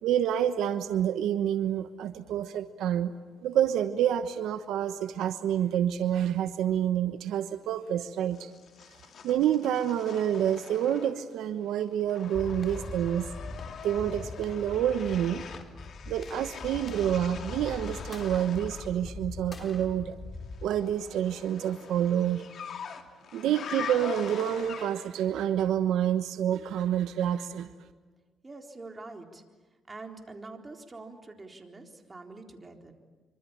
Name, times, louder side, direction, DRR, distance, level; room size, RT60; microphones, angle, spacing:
voice 1, 0.0-3.1 3.4-8.5 9.2-13.3 13.8-15.4 16.1-20.1 20.6-22.4 23.3-27.7, right 10 dB, 85° right, 10 dB, 1.1 m, -28 dB
sound 1, 8.3-11.4 11.7-19.0 20.5-25.2, left 7 dB, 60° left, 2.5 m, -43 dB
sound 2, 12.3-21.5, left 3 dB, 35° left, 3.7 m, -42 dB
voice 2, 28.4-29.4 29.9-32.9, right 3 dB, 25° right, 3 dB, 4.0 m, -45 dB
26.0 x 25.5 x 8.8 m, 1.4 s
cardioid pair, 90°, 0 cm